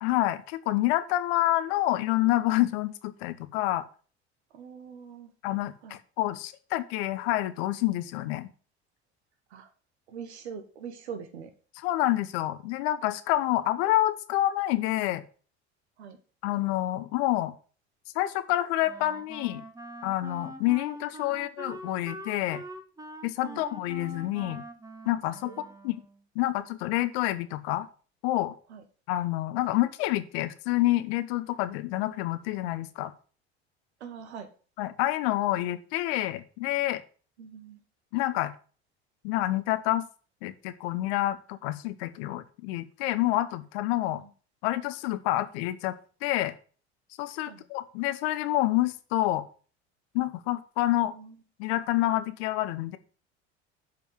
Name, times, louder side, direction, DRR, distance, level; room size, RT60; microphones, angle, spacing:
voice 1, 0.0-3.8 5.4-8.5 11.8-15.2 16.4-17.5 18.1-19.6 20.0-22.6 23.2-24.6 25.1-26.0 26.3-27.9 28.2-28.5 29.1-33.1 34.8-37.0 38.1-38.5 39.2-40.1 40.4-44.2 44.6-45.9 46.2-46.5 47.2-49.4 50.1-51.1 51.6-53.0, left 15 dB, 65° left, 13 dB, 1.0 m, -28 dB
voice 2, 4.5-5.3 5.8-6.0 9.5-9.7 10.1-11.5 13.6-13.7 16.0-16.2 21.3-21.4 23.5-23.7 25.4-25.7 28.7-28.8 34.0-34.5 37.4-37.8 44.0-44.3 47.4-47.6 51.1-51.4, right 7 dB, 80° right, 8 dB, 1.6 m, -43 dB
Wind instrument woodwind instrument, 18.8-26.2, right 1 dB, 10° right, 1.3 m, -44 dB
7.6 x 5.3 x 7.5 m, 0.39 s
hypercardioid pair, 65°, 33 cm